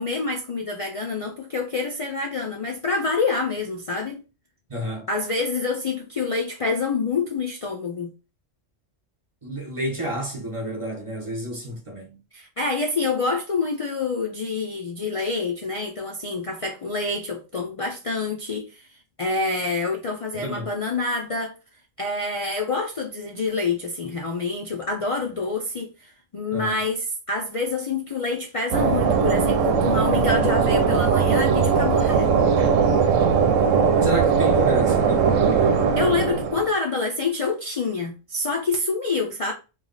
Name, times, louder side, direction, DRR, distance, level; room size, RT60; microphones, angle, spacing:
voice 1, 0.0-4.2 5.1-8.1 12.3-18.9 19.2-21.5 22.0-32.3 35.6-39.5, left 3 dB, 65° left, 0.3 m, -27 dB
voice 2, 4.7-5.1 9.4-12.2 20.3-20.7 26.5-26.8 34.0-35.3, right 1 dB, 25° right, 1.0 m, -30 dB
sound 1, 28.7-36.7, right 6 dB, 85° right, 0.9 m, -19 dB
3.2 x 2.3 x 3.8 m
omnidirectional pair, 1.3 m